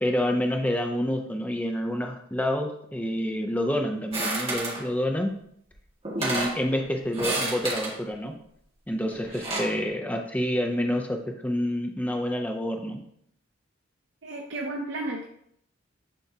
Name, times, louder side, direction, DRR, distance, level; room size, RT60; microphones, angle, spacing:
voice 1, 0.0-5.3 6.2-8.4 8.9-13.0, equal, 10° left, 3 dB, 0.5 m, -28 dB
sound 1, 4.1-4.8 5.7-5.8 6.0-6.6 7.1-7.9 9.1-9.7, right 2 dB, 30° right, 1.8 m, -29 dB
voice 2, 14.2-15.3, right 2 dB, 60° right, 0 dB, 0.7 m, -33 dB
9.9 x 3.5 x 2.8 m, 0.71 s
head